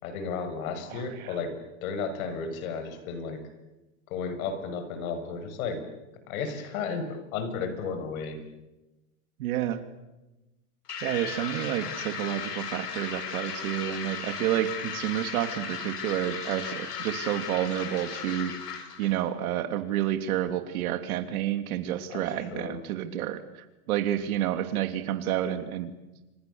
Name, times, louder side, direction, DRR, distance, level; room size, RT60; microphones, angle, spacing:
voice 1, 0.0-3.4 4.1-5.8 6.3-8.4 22.1-22.8, left 5 dB, 65° left, 8 dB, 7.1 m, -33 dB
voice 2, 0.9-1.4 9.4-9.8 11.0-18.5 19.0-25.9, right 12 dB, 65° right, 9 dB, 3.2 m, -30 dB
sound 1, 10.9-19.2, left 7 dB, 85° left, 5.1 m, -36 dB
29.0 x 26.0 x 7.2 m, 1.0 s
hypercardioid pair, 125°, 46 cm